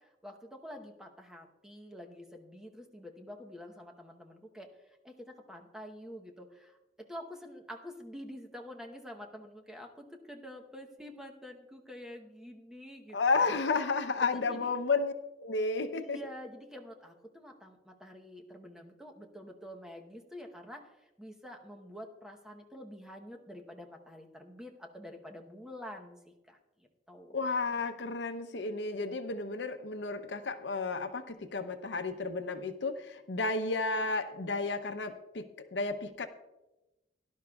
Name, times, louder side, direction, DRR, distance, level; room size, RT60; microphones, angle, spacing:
voice 1, 0.0-13.2 14.3-14.7 15.9-27.4, equal, 5° right, 2 dB, 0.9 m, -48 dB
voice 2, 13.1-15.1 15.4-16.2 27.3-36.3, left 3 dB, 80° left, 9 dB, 0.7 m, -32 dB
17.5 x 11.5 x 2.3 m, 1.0 s
head